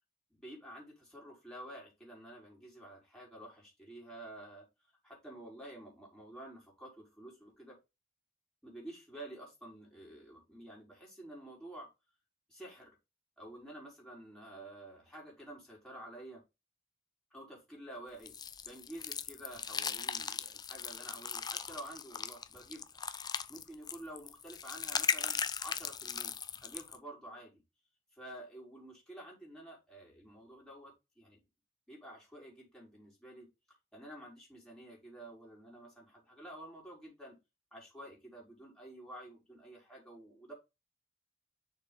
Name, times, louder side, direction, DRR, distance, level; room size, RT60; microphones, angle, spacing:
voice 1, 0.3-4.7 5.0-7.8 8.6-11.9 12.5-13.0 13.4-16.4 17.3-18.3 18.6-22.8 23.5-26.4 26.6-27.6 28.1-31.4 31.9-33.5 33.9-37.4 37.7-40.5, right 1 dB, 5° left, -3 dB, 4.4 m, -50 dB
sound 1, 18.3-27.0, left 6 dB, 20° left, 0.5 m, -38 dB
6.7 x 4.8 x 5.3 m, 0.25 s
head